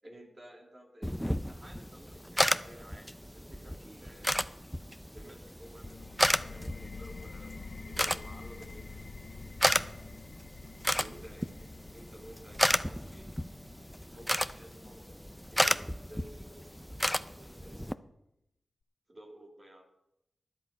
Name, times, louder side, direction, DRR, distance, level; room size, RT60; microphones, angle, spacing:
voice 1, 0.0-4.4 5.1-7.5 7.8-9.1 11.0-13.3 14.1-15.0 15.5-17.9 19.1-19.8, right 1 dB, 40° right, 0 dB, 3.0 m, -53 dB
sound 1, 1.0-17.9, equal, ahead, 0.7 m, -33 dB
sound 2, 5.8-17.2, left 4 dB, 65° left, 0.5 m, -48 dB
12.0 x 11.0 x 5.3 m, 0.82 s
cardioid pair, 50°, 0 cm